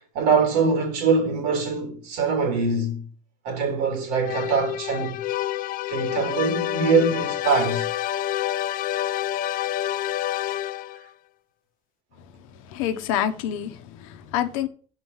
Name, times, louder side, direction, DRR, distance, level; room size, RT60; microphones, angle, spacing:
voice 1, 0.1-3.1 3.4-5.2 5.9-7.9, right 4 dB, 80° right, 2.7 m, -23 dB
sound 1, 4.2-11.1, left 12 dB, 60° left, 0.4 m, -28 dB
voice 2, 12.7-14.7, left 10 dB, 90° left, 0.8 m, -27 dB
5.6 x 4.4 x 6.2 m
supercardioid pair, 80°, 17 cm